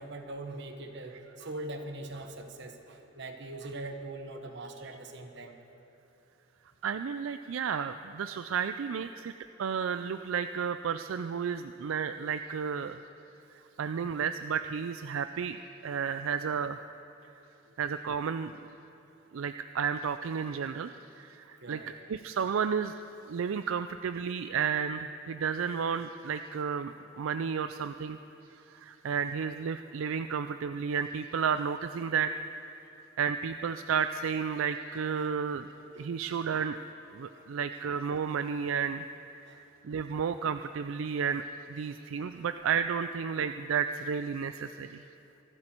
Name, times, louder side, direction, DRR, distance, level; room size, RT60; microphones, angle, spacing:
voice 1, 0.0-5.5 21.6-21.9 35.2-35.3 35.9-36.3 37.3-37.5 39.4-39.6 39.9-40.0 41.8-41.9 42.3-42.4, right 2 dB, 60° right, 5 dB, 1.3 m, -42 dB
voice 2, 6.8-9.3 9.6-13.0 13.8-16.8 17.8-18.5 19.3-23.0 23.3-28.2 28.7-32.3 33.2-35.7 36.0-36.8 37.1-39.0 39.5-41.4 41.7-45.0, right 6 dB, 85° right, 10 dB, 0.4 m, -32 dB
24.5 x 12.0 x 4.5 m, 3.0 s
head